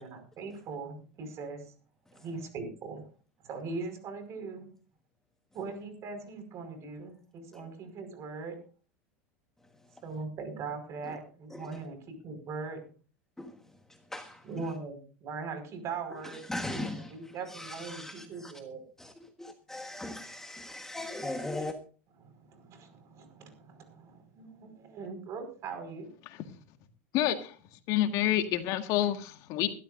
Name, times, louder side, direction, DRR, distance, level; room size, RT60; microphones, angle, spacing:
voice 1, 0.0-1.6 2.2-3.1 3.4-4.7 5.5-8.5 10.0-12.8 14.4-18.8 22.2-26.1, right 4 dB, 40° right, 7 dB, 5.3 m, -40 dB
voice 2, 14.1-14.5 16.1-18.5 19.0-21.8, left 1 dB, 5° left, 5 dB, 1.4 m, -39 dB
voice 3, 27.1-27.5 27.9-29.7, left 12 dB, 55° left, 7 dB, 1.8 m, -28 dB
21.5 x 12.5 x 2.6 m, 0.38 s
supercardioid pair, 110°, 7 cm